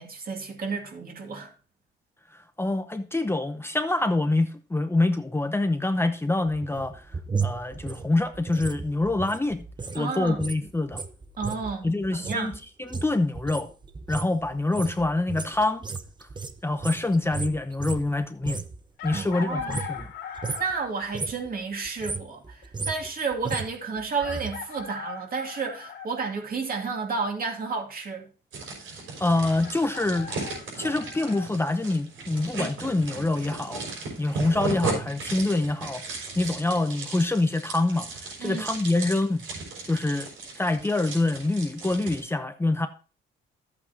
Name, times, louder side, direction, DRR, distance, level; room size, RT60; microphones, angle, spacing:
voice 1, 0.0-1.5 9.9-10.4 11.4-12.5 19.1-19.8 20.6-28.2 38.4-38.7, right 4 dB, 45° right, 2.6 m, -31 dB
voice 2, 2.6-7.1 7.4-9.6 9.9-11.0 11.8-12.5 12.8-13.7 14.1-15.8 16.2-16.3 16.6-18.6 19.0-20.1 29.2-30.3 30.8-33.8 34.2-36.0 36.4-39.4 39.8-40.3 40.6-42.9, left 2 dB, 10° left, 0.7 m, -26 dB
sound 1, 6.5-10.0 10.3-18.8 19.0-20.1 20.4-20.7 21.0-21.5 21.8-24.5 24.8-24.9, right 4 dB, 20° right, 0.9 m, -35 dB
Chicken rooster, 19.0-20.9 22.6-22.7 24.2-26.1 29.6-31.5, left 7 dB, 85° left, 2.5 m, -39 dB
sound 2, 28.5-42.2, right 3 dB, 85° right, 5.8 m, -36 dB
12.0 x 8.4 x 2.8 m
cardioid pair, 90°, 20 cm